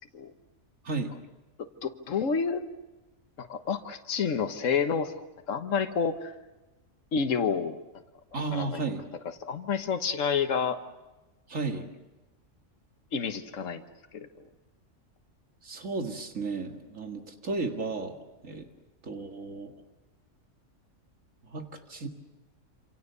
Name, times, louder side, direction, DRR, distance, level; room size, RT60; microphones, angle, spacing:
voice 1, 0.8-1.2 8.3-9.0 11.5-11.9 15.6-18.2 18.4-18.7 19.0-19.7 21.4-22.1, right 3 dB, 75° right, 4 dB, 2.3 m, -33 dB
voice 2, 1.6-2.6 3.4-5.2 5.5-6.3 7.1-7.8 8.5-8.8 9.4-10.8 13.1-13.8 14.1-14.5, left 6 dB, 70° left, 7 dB, 1.6 m, -29 dB
27.5 x 26.5 x 6.9 m, 1.1 s
omnidirectional pair, 1.4 m